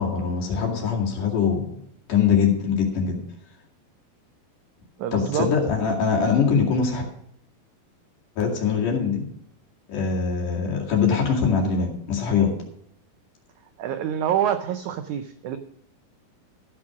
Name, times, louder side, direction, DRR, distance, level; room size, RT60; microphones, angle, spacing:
voice 1, 0.0-1.7 2.1-3.2 5.1-7.0 8.4-9.2 9.9-12.5, left 6 dB, 60° left, -1 dB, 3.7 m, -22 dB
voice 2, 5.0-5.5 13.8-15.6, right 10 dB, 85° right, 9 dB, 1.7 m, -26 dB
14.5 x 6.2 x 6.2 m, 0.69 s
omnidirectional pair, 4.2 m